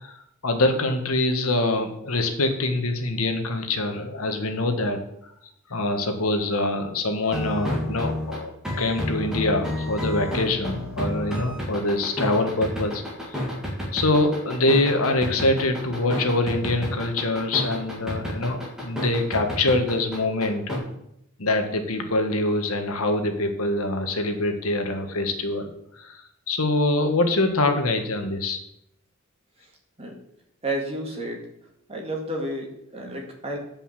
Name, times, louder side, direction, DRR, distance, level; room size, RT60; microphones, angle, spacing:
voice 1, 0.0-5.3 5.7-13.0 13.3-13.4 13.9-20.8 21.4-25.7 25.9-28.6, left 2 dB, 80° left, 5 dB, 1.5 m, -24 dB
sound 1, 7.2-20.8, left 1 dB, 5° right, 2.4 m, -30 dB
voice 2, 30.6-31.4 31.9-33.6, right 1 dB, 30° right, 0 dB, 2.0 m, -31 dB
9.6 x 5.4 x 7.4 m, 0.78 s
head